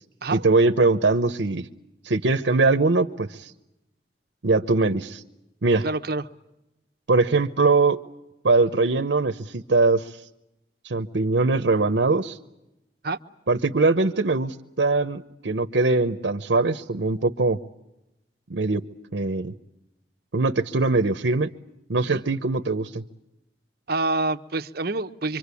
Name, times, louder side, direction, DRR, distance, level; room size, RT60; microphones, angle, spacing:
voice 1, 0.3-1.7 2.0-3.5 4.4-5.2 5.6-5.9 7.1-8.0 8.4-10.2 10.8-12.4 13.5-17.6 18.5-18.8 19.1-19.5 20.3-21.5 21.9-23.0, right 3 dB, 85° right, 8 dB, 0.9 m, -22 dB
voice 2, 5.8-6.3 13.0-13.2 22.0-22.2 23.9-25.4, right 2 dB, 60° right, 8 dB, 1.0 m, -27 dB
25.5 x 25.0 x 8.4 m, 0.92 s
head